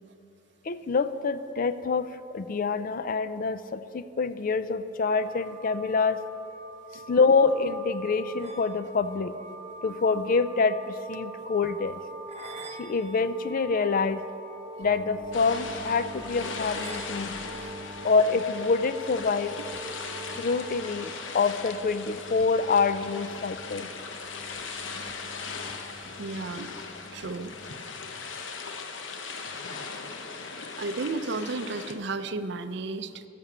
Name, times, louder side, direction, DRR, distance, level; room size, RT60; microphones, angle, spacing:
voice 1, 0.6-6.2 7.1-9.3 9.8-12.0 12.8-14.3 14.8-17.3 18.0-19.6 20.4-23.9, left 4 dB, 50° left, 13 dB, 0.4 m, -26 dB
sound 1, 5.0-21.0, right 2 dB, 35° right, 0.9 m, -43 dB
sound 2, 14.8-27.7, left 2 dB, 5° left, 0.9 m, -48 dB
sound 3, 15.3-31.9, left 4 dB, 80° left, 0.8 m, -39 dB
voice 2, 26.2-26.8 27.1-27.5 30.4-33.3, right 3 dB, 65° right, 11 dB, 0.5 m, -33 dB
10.5 x 6.8 x 7.2 m, 2.8 s
head